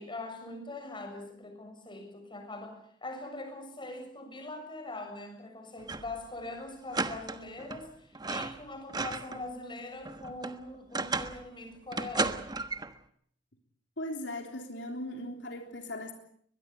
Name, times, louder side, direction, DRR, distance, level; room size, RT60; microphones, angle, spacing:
voice 1, 0.0-12.4, left 2 dB, 25° left, 6 dB, 6.9 m, -42 dB
sound 1, 5.8-6.2 6.5-6.6 6.9-7.8 8.1-9.4 9.8-11.4 11.9-12.9, right 3 dB, 25° right, 1.3 m, -34 dB
voice 2, 14.0-16.1, left 1 dB, 85° left, 4 dB, 3.6 m, -38 dB
22.5 x 21.5 x 8.4 m, 0.63 s
head